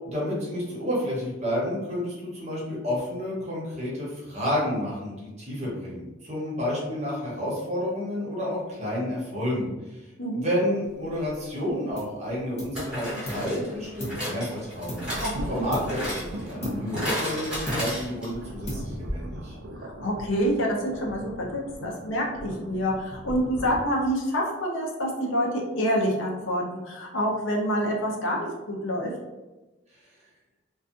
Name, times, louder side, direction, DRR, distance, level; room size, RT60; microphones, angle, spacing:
voice 1, 0.0-10.0 10.3-15.1 15.5-19.6, left 1 dB, 35° right, -5 dB, 0.8 m, -30 dB
sound 1, 11.5-11.6 12.7-18.5 18.8-18.9 19.1-19.2, equal, 5° right, 0.9 m, -34 dB
sound 2, 12.0-12.2 12.6-13.6 14.0-15.3 15.7-16.1 16.6-17.4 17.7-18.2 18.7-19.2, left 1 dB, 35° left, 0.7 m, -37 dB
sound 3, 15.0-23.9, right 1 dB, 70° right, 0.4 m, -38 dB
voice 2, 15.2-15.7 19.8-29.1, equal, 90° left, -1 dB, 0.6 m, -27 dB
2.6 x 2.3 x 2.4 m, 1.1 s
head